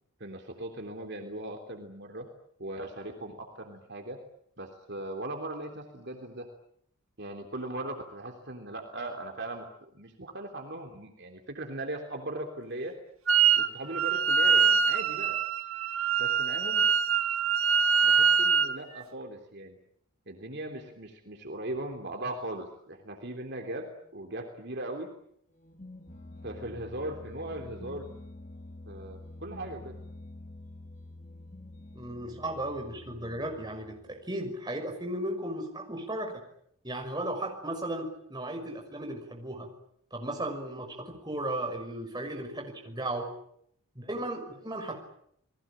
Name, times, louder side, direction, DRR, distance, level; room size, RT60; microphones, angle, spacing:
voice 1, 0.2-2.3 2.6-4.2 4.6-6.5 7.2-13.0 13.6-15.4 16.2-16.9 18.0-19.8 20.3-25.1 26.4-28.1 28.9-30.0, right 1 dB, 50° right, 3 dB, 3.3 m, -39 dB
Wind instrument woodwind instrument, 13.3-13.7 13.9-18.8, right 5 dB, 70° right, 1.9 m, -24 dB
sound 1, 25.6-34.4, left 2 dB, 35° left, 2.5 m, -47 dB
voice 2, 31.9-36.3 36.8-39.7 40.1-43.3 44.0-45.0, right 1 dB, 20° right, 3 dB, 6.0 m, -35 dB
30.0 x 20.5 x 8.9 m, 0.69 s
head